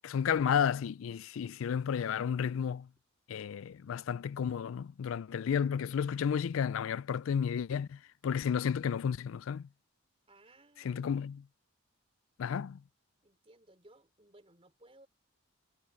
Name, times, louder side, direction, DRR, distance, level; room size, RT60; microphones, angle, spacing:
voice 1, 0.0-2.9 3.3-9.7 10.8-11.4 12.4-12.8, left 7 dB, 70° left, 0.3 m, -32 dB
voice 2, 10.3-11.1 13.2-15.1, right 2 dB, 25° right, 3.7 m, -60 dB
head